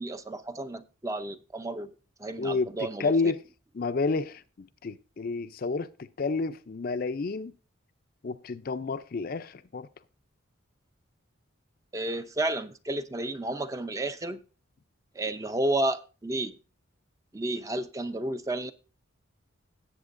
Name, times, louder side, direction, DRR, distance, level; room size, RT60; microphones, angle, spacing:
voice 1, 0.0-1.9 2.2-3.1 11.9-14.4 15.2-16.5 17.3-18.7, right 2 dB, 15° right, 0.5 m, -31 dB
voice 2, 2.4-3.4 3.7-5.9 6.2-7.5 8.2-9.9, left 4 dB, 45° left, 0.4 m, -30 dB
17.5 x 7.9 x 2.5 m
head